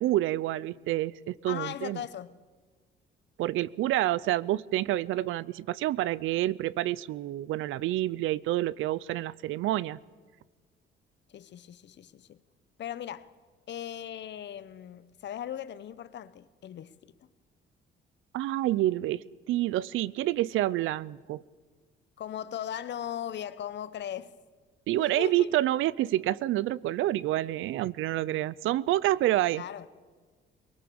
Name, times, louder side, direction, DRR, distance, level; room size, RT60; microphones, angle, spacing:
voice 1, 0.0-2.0 3.4-10.0 18.3-21.4 24.9-29.6, right 15 dB, 85° right, 0.6 m, -28 dB
voice 2, 1.5-2.4 11.3-12.4 12.8-13.3 13.7-17.3 22.2-24.3 25.0-25.5 29.5-29.9, left 10 dB, 60° left, 1.0 m, -38 dB
22.5 x 20.0 x 7.0 m
cardioid pair, 90°, 20 cm